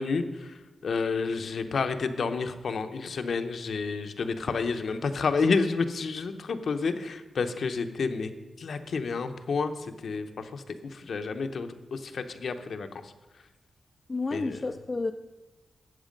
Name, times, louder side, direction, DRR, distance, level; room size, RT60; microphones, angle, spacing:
voice 1, 0.0-8.3 8.6-12.9 14.3-14.6, left 4 dB, 60° left, 0.8 m, -30 dB
voice 2, 14.1-15.1, left 3 dB, 25° left, 0.4 m, -30 dB
12.5 x 8.0 x 5.2 m
wide cardioid pair, 150°, 0 cm